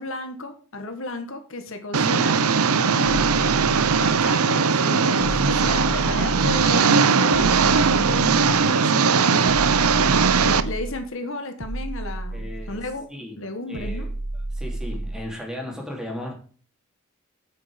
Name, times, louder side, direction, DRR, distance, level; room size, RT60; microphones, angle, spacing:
voice 1, 0.0-2.3 2.9-3.4 3.7-9.5 10.4-13.1 13.4-14.1, left 2 dB, 60° left, 7 dB, 1.5 m, -34 dB
Engine, 1.9-10.6, right 5 dB, 85° right, 0.8 m, -19 dB
sound 1, 3.0-4.3 5.2-6.8 7.3-8.7 9.4-11.1 11.6-13.0 13.7-15.3, right 2 dB, 55° right, 1.0 m, -32 dB
voice 2, 12.3-12.8 13.1-13.4 13.7-14.1 14.5-16.3, left 1 dB, 5° right, 0 dB, 2.9 m, -35 dB
8.6 x 7.9 x 5.0 m, 0.42 s
head